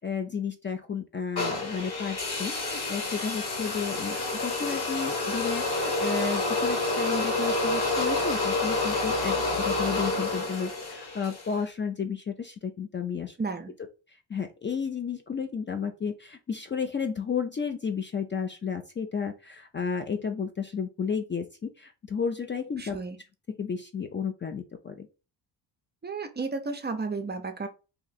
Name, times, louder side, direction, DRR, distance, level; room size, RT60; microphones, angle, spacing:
voice 1, 0.0-13.4 14.3-23.0 23.6-25.1, left 6 dB, 25° left, 6 dB, 0.4 m, -32 dB
sound 1, 1.4-11.5, left 2 dB, 55° left, 1.8 m, -28 dB
voice 2, 13.4-13.7 22.8-23.2 26.0-27.7, right 4 dB, 25° right, 7 dB, 0.6 m, -33 dB
2.8 x 2.4 x 4.0 m, 0.31 s
supercardioid pair, 75°, 45 cm